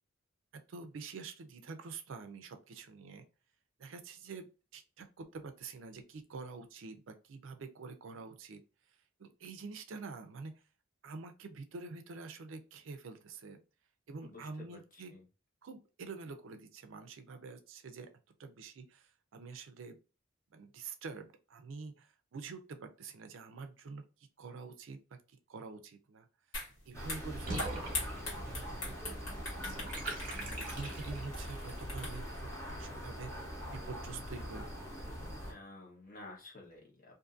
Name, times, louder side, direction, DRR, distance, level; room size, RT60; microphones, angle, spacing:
voice 1, 0.5-3.2 3.8-4.5 4.7-8.6 9.2-10.5 11.0-13.6 14.1-15.1 15.6-18.1 18.4-20.0 20.5-24.1 24.4-25.0 25.5-26.3 26.9-29.9 30.5-34.9, right 4 dB, 75° right, 7 dB, 0.4 m, -47 dB
voice 2, 14.2-15.2 35.5-37.2, left 2 dB, 45° left, -2 dB, 1.0 m, -52 dB
sound 1, 26.5-26.7 27.0-32.4, left 2 dB, 85° left, 1.5 m, -41 dB
sound 2, 26.9-35.5, equal, 15° left, 0.8 m, -43 dB
Water / Bathtub (filling or washing), 27.4-31.5, right 2 dB, 40° right, 0.9 m, -43 dB
2.6 x 2.5 x 2.4 m, 0.32 s
head